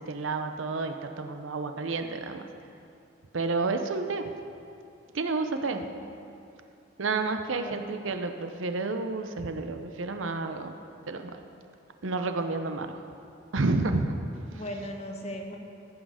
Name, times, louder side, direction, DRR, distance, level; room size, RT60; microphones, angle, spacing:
voice 1, 0.1-2.5 3.3-4.2 5.1-5.8 7.0-10.7 11.1-11.3 12.0-13.0 13.5-14.1, right 3 dB, 80° right, 7 dB, 0.7 m, -30 dB
voice 2, 5.7-6.2 7.5-7.9 14.5-15.6, equal, 35° left, 2 dB, 1.0 m, -39 dB
14.5 x 6.3 x 5.0 m, 2.6 s
head